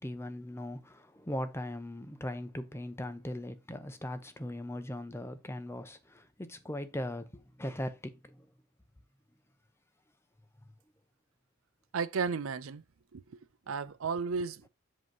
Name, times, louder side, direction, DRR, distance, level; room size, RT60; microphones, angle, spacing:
voice 1, 0.0-8.5, left 1 dB, 10° left, 0.8 m, -39 dB
voice 2, 11.9-12.8 13.1-13.2 13.7-14.7, right 5 dB, 80° right, 0.5 m, -33 dB
7.9 x 3.1 x 5.4 m
head